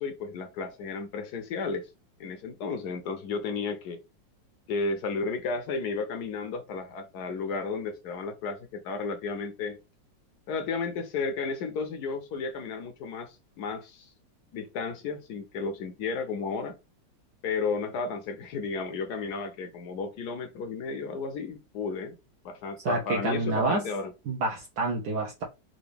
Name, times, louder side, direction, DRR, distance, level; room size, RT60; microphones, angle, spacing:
voice 1, 0.0-1.9 2.2-4.0 4.7-9.8 10.5-14.1 14.5-16.8 17.4-22.2 22.4-24.1, left 4 dB, 70° left, 1.0 m, -33 dB
voice 2, 22.8-23.8 24.3-25.4, right 3 dB, 70° right, 1.1 m, -28 dB
3.8 x 2.4 x 3.3 m
omnidirectional pair, 2.0 m